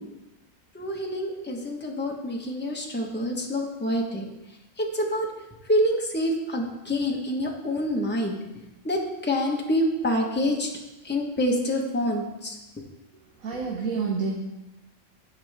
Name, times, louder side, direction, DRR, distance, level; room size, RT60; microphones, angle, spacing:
voice 1, 0.7-4.3 4.8-5.3 5.7-8.4 8.8-10.7 11.0-12.6, equal, 10° left, -1 dB, 1.2 m, -26 dB
voice 2, 13.4-14.3, right 5 dB, 85° right, -2 dB, 1.5 m, -28 dB
16.0 x 5.4 x 3.5 m, 1.0 s
omnidirectional pair, 1.4 m